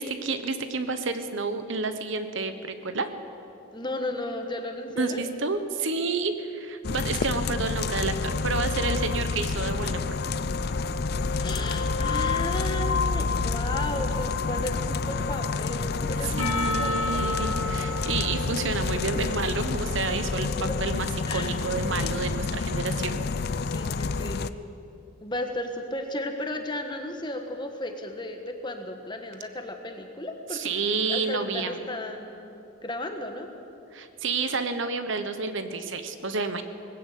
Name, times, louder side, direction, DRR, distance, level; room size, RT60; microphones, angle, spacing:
voice 1, 0.0-3.1 5.0-8.1 8.4-10.1 16.2-20.5 20.8-23.2 30.5-31.8 33.9-36.6, right 4 dB, 60° right, 9 dB, 1.1 m, -30 dB
voice 2, 3.7-5.3 11.4-17.5 20.7-20.8 21.3-21.5 23.6-24.4 25.2-30.7 31.1-32.5 32.8-33.5, left 1 dB, 20° left, 5 dB, 1.5 m, -34 dB
sound 1, 6.8-24.5, left 4 dB, 45° left, 0.5 m, -28 dB
Percussion, 16.4-20.9, left 2 dB, 70° left, 2.5 m, -34 dB
20.0 x 15.5 x 8.4 m, 2.8 s
head